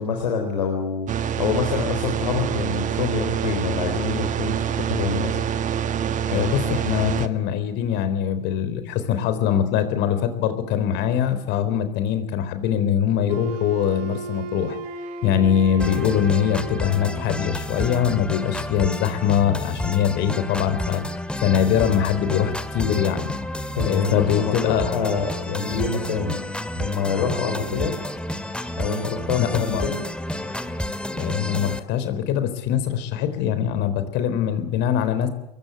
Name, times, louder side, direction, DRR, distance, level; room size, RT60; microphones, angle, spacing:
voice 1, 0.0-5.4 23.7-26.4 26.8-27.9 28.8-30.0, left 5 dB, 85° left, 2 dB, 4.3 m, -26 dB
sound 1, 1.1-7.3, right 8 dB, 35° right, 1.4 m, -26 dB
voice 2, 6.3-14.8 15.2-21.0 21.4-23.3 23.8-24.9 29.4-29.9 31.1-35.3, left 9 dB, 55° left, 11 dB, 4.1 m, -22 dB
Wind instrument woodwind instrument, 13.3-17.4, right 4 dB, 70° right, 2.9 m, -35 dB
sound 2, 15.8-31.8, left 1 dB, 5° left, 2.0 m, -30 dB
22.5 x 21.5 x 8.4 m, 0.81 s
hypercardioid pair, 90°, 21 cm